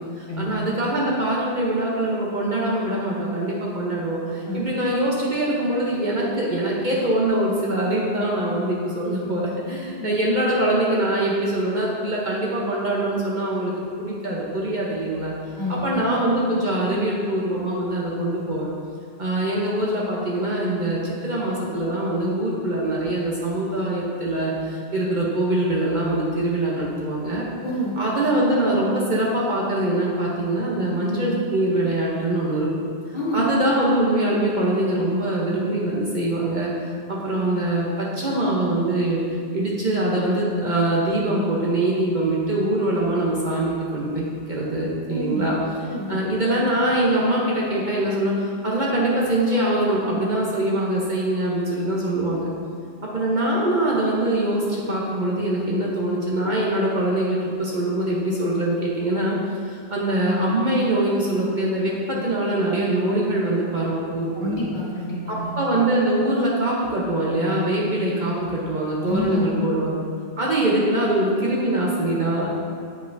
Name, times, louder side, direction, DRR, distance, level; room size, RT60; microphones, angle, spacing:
voice 1, 0.2-13.7 14.0-15.3 15.7-18.7 19.2-27.5 27.9-32.7 33.1-36.7 37.1-39.2 39.5-45.6 46.1-52.5 53.0-59.4 59.6-64.5 65.3-70.0 70.4-72.5, right 1 dB, 45° right, -5 dB, 0.9 m, -23 dB
voice 2, 15.6-16.0 27.6-28.0 33.1-33.4 45.1-45.6 45.8-46.2 64.3-65.5 69.0-69.4, left 1 dB, 45° left, -6 dB, 1.3 m, -28 dB
7.8 x 5.4 x 2.6 m, 2.3 s
omnidirectional pair, 1.2 m